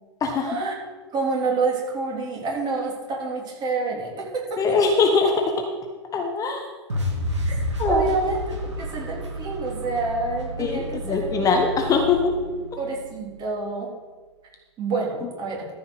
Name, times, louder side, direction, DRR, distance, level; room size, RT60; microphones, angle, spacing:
voice 1, 0.4-0.7 1.1-4.8 7.5-11.5 12.8-13.9 14.8-15.7, right 3 dB, 30° right, -2 dB, 3.6 m, -28 dB
voice 2, 4.6-5.7 6.1-6.6 7.8-8.1 10.6-12.4, left 4 dB, 20° left, 3 dB, 1.2 m, -22 dB
sound 1, 6.9-13.1, equal, 75° right, 2.4 m, -30 dB
14.0 x 5.6 x 6.4 m, 1.4 s
figure-of-eight pair, 100°, 15 cm